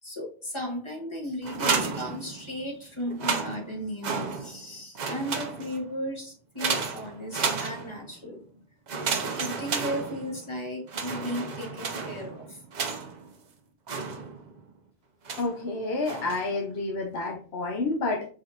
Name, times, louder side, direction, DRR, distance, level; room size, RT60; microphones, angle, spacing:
voice 1, 0.0-8.4 9.2-12.6, equal, 30° left, 0 dB, 1.3 m, -35 dB
sound 1, 1.4-2.7 3.1-4.7 4.9-5.9 6.6-8.2 8.9-10.5 10.9-13.3 13.9-14.6 15.3-15.6 16.0-16.5, right 5 dB, 50° right, 0.7 m, -32 dB
voice 2, 15.4-18.3, left 3 dB, 75° left, 1 dB, 1.1 m, -29 dB
4.1 x 3.7 x 2.5 m, 0.42 s
omnidirectional pair, 1.0 m